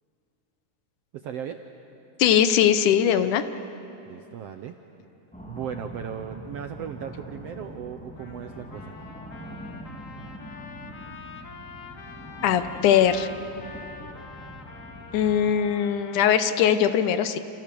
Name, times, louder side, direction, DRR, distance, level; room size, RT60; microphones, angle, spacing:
voice 1, 1.1-1.6 4.1-4.7 5.5-9.0, right 9 dB, 75° right, 7 dB, 1.5 m, -36 dB
voice 2, 2.2-3.4 12.4-13.3 15.1-17.4, left 9 dB, 75° left, 11 dB, 2.3 m, -20 dB
sound 1, 5.3-15.5, equal, 5° left, 2.0 m, -43 dB
Trumpet, 8.2-16.6, left 4 dB, 40° left, 1.2 m, -45 dB
28.5 x 28.0 x 6.9 m, 2.9 s
omnidirectional pair, 3.7 m